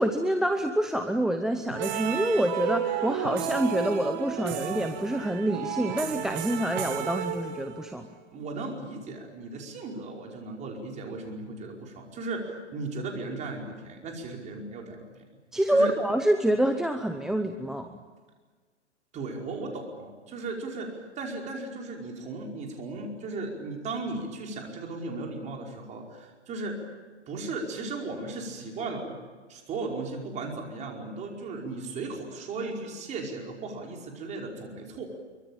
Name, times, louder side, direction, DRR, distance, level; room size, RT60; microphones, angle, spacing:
voice 1, 0.0-8.1 15.5-17.9, right 1 dB, ahead, 7 dB, 0.7 m, -27 dB
sound 1, 1.7-8.0, right 9 dB, 40° right, 2.2 m, -32 dB
voice 2, 8.3-15.0 15.7-15.9 19.1-26.8 27.3-29.2 29.5-35.1, right 3 dB, 20° right, 1 dB, 5.1 m, -36 dB
25.0 x 24.0 x 8.9 m, 1.4 s
hypercardioid pair, 135°, 35 cm